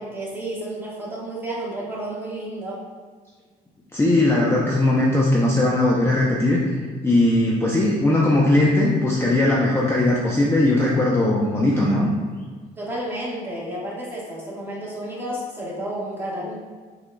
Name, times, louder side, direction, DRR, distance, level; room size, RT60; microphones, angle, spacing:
voice 1, 0.0-2.8 12.8-16.5, right 1 dB, 15° right, -6 dB, 1.5 m, -31 dB
voice 2, 3.9-6.7 7.0-12.1, left 1 dB, 15° left, -4 dB, 0.6 m, -19 dB
6.0 x 3.9 x 2.2 m, 1.5 s
cardioid pair, 110°, 17 cm